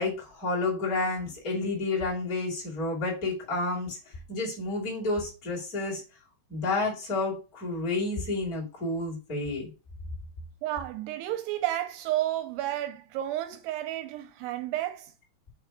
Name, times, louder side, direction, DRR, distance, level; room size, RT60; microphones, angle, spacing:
voice 1, 0.0-4.0 4.3-6.0 6.5-9.7, left 2 dB, 25° left, 2.2 m, -30 dB
voice 2, 10.6-15.1, right 13 dB, 85° right, 2.5 m, -31 dB
6.7 x 3.4 x 4.8 m
omnidirectional pair, 5.1 m